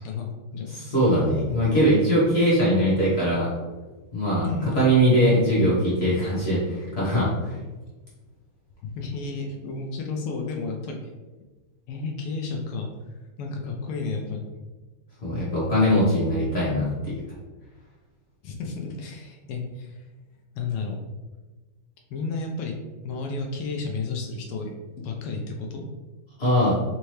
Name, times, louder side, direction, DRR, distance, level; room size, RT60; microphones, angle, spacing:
voice 1, 0.0-0.8 4.4-4.8 8.8-11.0 11.9-12.9 13.4-14.5 18.4-20.0 20.5-21.0 22.1-22.7 23.0-24.7 25.0-25.9, left 4 dB, 80° left, 2 dB, 1.5 m, -32 dB
voice 2, 0.7-3.5 4.1-4.4 4.7-7.5 15.2-17.2 26.4-26.8, equal, 45° left, -8 dB, 0.8 m, -21 dB
4.4 x 2.7 x 3.1 m, 1.2 s
omnidirectional pair, 2.4 m